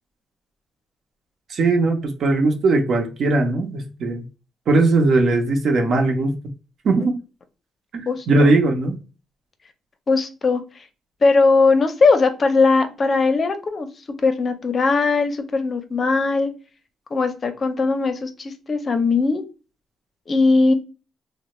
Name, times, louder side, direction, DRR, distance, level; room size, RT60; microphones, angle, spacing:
voice 1, 1.5-4.2 4.7-6.4 6.8-7.2 7.9-9.0, right 2 dB, 60° right, 0.8 m, -19 dB
voice 2, 8.1-8.5 10.1-10.6 11.2-13.9 14.2-16.5 17.1-19.4 20.3-20.7, left 3 dB, 40° left, 0.5 m, -19 dB
3.2 x 2.0 x 3.0 m
cardioid pair, 90°, 0 cm